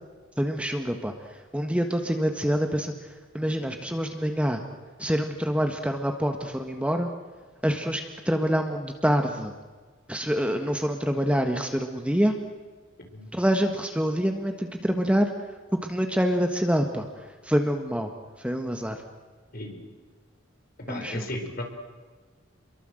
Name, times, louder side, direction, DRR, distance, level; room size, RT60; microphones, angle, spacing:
voice 1, 0.4-4.6 5.0-7.1 7.6-9.5 10.1-12.4 13.3-15.3 15.7-18.1 18.4-19.0 20.9-21.3, equal, 5° right, 5 dB, 1.5 m, -26 dB
voice 2, 19.5-19.8 20.9-21.6, left 1 dB, 45° left, 4 dB, 4.6 m, -35 dB
29.0 x 23.0 x 7.9 m, 1.4 s
head